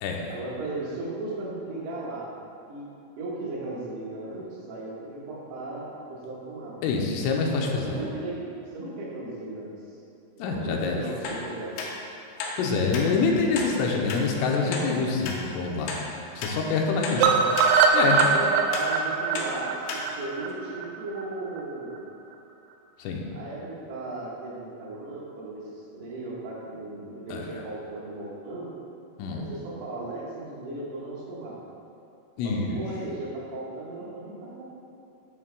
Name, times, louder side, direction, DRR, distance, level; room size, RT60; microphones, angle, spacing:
voice 1, 0.3-2.3 2.7-2.8 3.2-6.8 7.5-8.4 8.7-9.7 10.4-11.8 18.1-22.1 23.3-28.7 29.3-31.6 32.4-34.6, right 2 dB, 65° right, -6 dB, 3.3 m, -36 dB
voice 2, 6.8-8.1 10.4-11.0 12.6-16.0 16.4-18.2 23.0-23.2 27.3-27.6 29.2-29.5 32.4-32.8, left 4 dB, 90° left, 0 dB, 3.5 m, -26 dB
sound 1, 11.2-11.4 11.8-11.9 12.4-12.6 12.9-13.1 13.5-13.7 14.1-14.2 14.7-14.8 15.2-15.4 15.9-16.0 16.4-16.6 17.0-17.2 17.6-17.7 18.2-18.3 18.7-18.9 19.3-19.5 19.9-20.0 20.5-20.6, left 4 dB, 75° left, 2.7 m, -33 dB
sound 2, 17.2-21.2 21.6-21.7 22.0-22.1 22.3-22.4, right 5 dB, 85° right, 2.6 m, -22 dB
12.5 x 8.6 x 2.3 m, 2.8 s
omnidirectional pair, 5.7 m